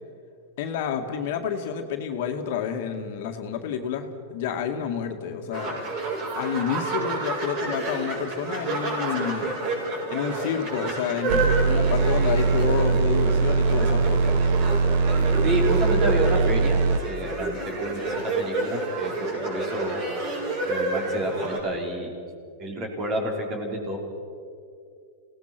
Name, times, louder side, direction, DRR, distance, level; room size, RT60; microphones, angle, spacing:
voice 1, 0.6-5.8 6.4-9.6 10.1-14.4, left 7 dB, 60° left, 5 dB, 2.1 m, -29 dB
sound 1, 5.5-21.6, right 2 dB, 45° right, 7.0 m, -29 dB
sound 2, 11.3-17.0, right 4 dB, 65° right, 1.1 m, -21 dB
voice 2, 15.4-20.0 20.7-22.2 22.6-24.0, right 1 dB, 30° right, 1 dB, 4.6 m, -29 dB
27.0 x 18.5 x 6.1 m, 2.4 s
supercardioid pair, 140°, 0 cm